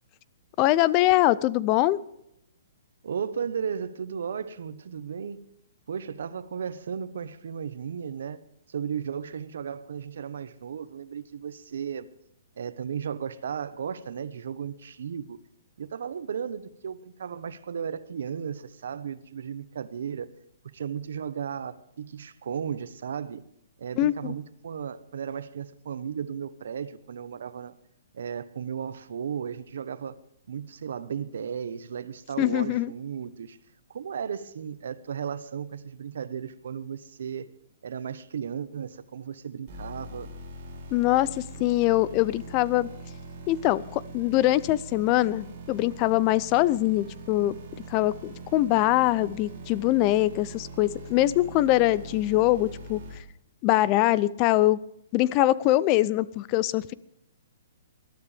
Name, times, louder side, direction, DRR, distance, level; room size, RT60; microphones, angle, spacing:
voice 1, 0.6-2.0 24.0-24.3 32.4-32.9 40.9-42.9 43.5-47.6 47.9-53.0 53.6-54.8 55.1-56.9, left 16 dB, 25° left, 0.5 m, -23 dB
voice 2, 3.0-5.5 5.9-8.4 8.7-12.1 12.6-15.4 15.8-20.3 20.6-23.4 23.8-27.7 28.1-30.2 30.5-33.6 33.9-37.5 37.8-40.3, right 7 dB, 70° right, 1.1 m, -35 dB
sound 1, 39.7-53.2, right 2 dB, 30° right, 5.1 m, -42 dB
21.5 x 12.5 x 3.5 m
hypercardioid pair, 165°, 0 cm